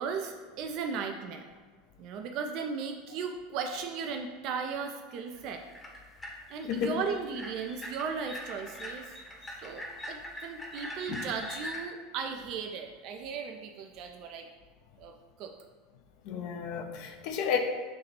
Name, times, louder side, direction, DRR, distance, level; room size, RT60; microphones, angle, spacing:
voice 1, 0.0-1.5 2.0-5.6 6.5-9.1 9.6-14.5 15.0-15.1 15.4-15.5, right 6 dB, 50° right, 4 dB, 0.3 m, -36 dB
sound 1, 5.4-11.9, left 1 dB, 15° left, 0.8 m, -42 dB
voice 2, 6.7-7.0 16.2-17.6, left 7 dB, 55° left, 5 dB, 0.5 m, -31 dB
6.4 x 2.8 x 2.9 m, 1.5 s
figure-of-eight pair, 80°, 0 cm